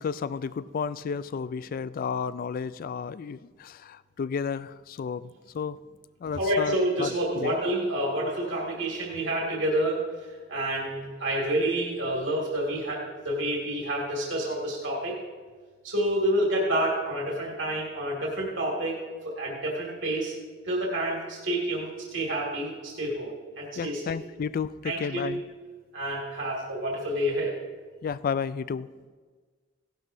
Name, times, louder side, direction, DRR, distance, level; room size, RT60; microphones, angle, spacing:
voice 1, 0.0-5.8 6.2-7.6 23.8-25.4 28.0-28.9, left 6 dB, 45° left, 17 dB, 0.3 m, -32 dB
voice 2, 6.3-15.2 15.8-20.3 20.6-24.2 24.8-25.3 25.9-27.5, right 1 dB, 70° right, -2 dB, 2.3 m, -29 dB
17.0 x 12.0 x 2.7 m, 1.5 s
head